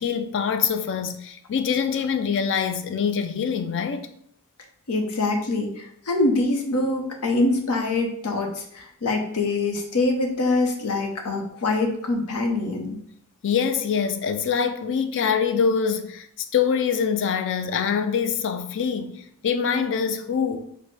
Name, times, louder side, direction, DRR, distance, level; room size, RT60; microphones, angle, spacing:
voice 1, 0.0-4.1 13.4-16.3 16.5-20.6, left 6 dB, 55° left, 0.4 m, -24 dB
voice 2, 4.9-13.0, left 2 dB, 85° left, 0.8 m, -24 dB
6.2 x 2.1 x 3.2 m
head